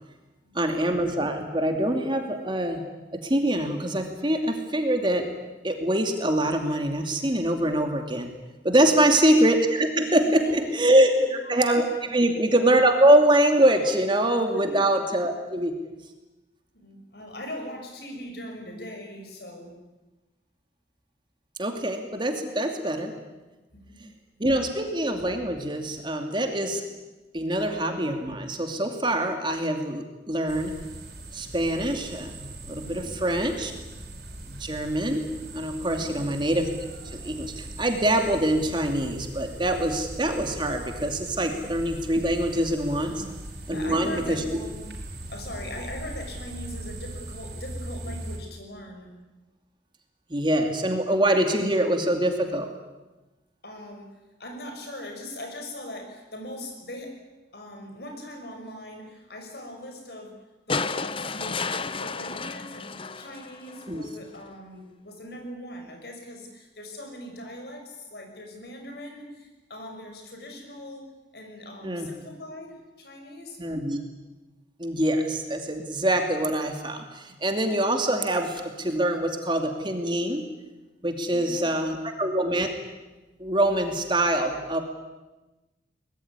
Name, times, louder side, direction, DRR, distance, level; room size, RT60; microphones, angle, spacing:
voice 1, 0.5-2.8 3.1-5.3 5.6-8.3 8.6-15.7 21.6-23.1 24.0-24.1 24.4-26.8 27.3-30.8 31.3-33.7 34.5-35.2 35.5-36.6 37.0-43.2 43.7-44.4 50.3-52.7 63.9-64.0 71.8-72.1 73.6-74.0 74.8-80.4 81.0-82.7 83.4-84.8, right 1 dB, 25° right, 4 dB, 2.6 m, -24 dB
voice 2, 10.2-10.7 11.0-11.5 12.1-12.3 14.5-14.8 16.7-19.8 23.7-24.0 32.8-33.1 35.9-36.3 41.4-41.7 43.0-43.3 43.7-44.8 45.3-49.1 53.6-54.1 54.4-57.2 57.5-60.3 60.7-73.6 81.2-81.9, left 1 dB, 60° left, 3 dB, 6.3 m, -41 dB
sound 1, 30.5-48.4, right 1 dB, 60° right, 5.7 m, -40 dB
sound 2, 60.7-64.0 65.3-65.4, left 4 dB, 30° left, 0.8 m, -32 dB
23.5 x 20.5 x 9.8 m, 1.1 s
head